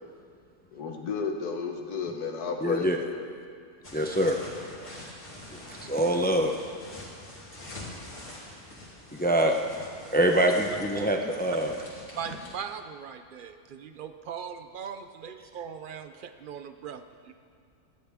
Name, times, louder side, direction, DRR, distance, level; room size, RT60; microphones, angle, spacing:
voice 1, 0.7-3.2, left 5 dB, 80° left, 3 dB, 1.7 m, -32 dB
voice 2, 2.6-3.0 3.9-4.4 5.5-6.6 9.1-9.6 10.1-11.7, right 1 dB, 15° left, 3 dB, 0.3 m, -25 dB
sound 1, 3.8-12.5, left 1 dB, 50° left, 3.1 m, -44 dB
voice 3, 12.1-17.3, right 7 dB, 75° right, 8 dB, 0.4 m, -39 dB
18.0 x 13.5 x 3.5 m, 2.2 s
omnidirectional pair, 1.6 m